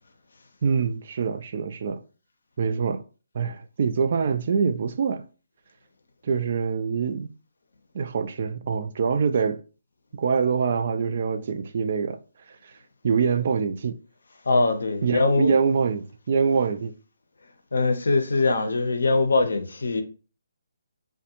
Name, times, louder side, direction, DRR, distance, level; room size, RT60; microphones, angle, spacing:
voice 1, 0.6-2.0 2.6-3.0 3.3-5.2 6.2-7.3 7.9-9.6 10.1-12.2 12.6-12.7 13.0-14.0 15.0-16.9, right 5 dB, 50° right, 0.3 m, -24 dB
voice 2, 14.5-15.5 17.7-20.0, left 3 dB, 75° left, 0.6 m, -22 dB
2.4 x 2.2 x 2.8 m
figure-of-eight pair, 145°, 0 cm